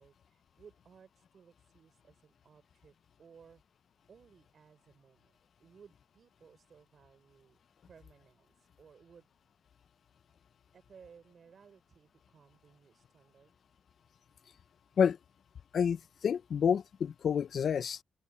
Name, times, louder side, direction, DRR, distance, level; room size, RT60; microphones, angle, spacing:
voice 1, 0.0-3.6 4.1-7.6 7.9-9.3 10.7-13.6, right 6 dB, 55° right, 3.4 m, -60 dB
voice 2, 15.7-18.0, left 7 dB, 60° left, 0.4 m, -29 dB
open air
cardioid pair, 100°, 0 cm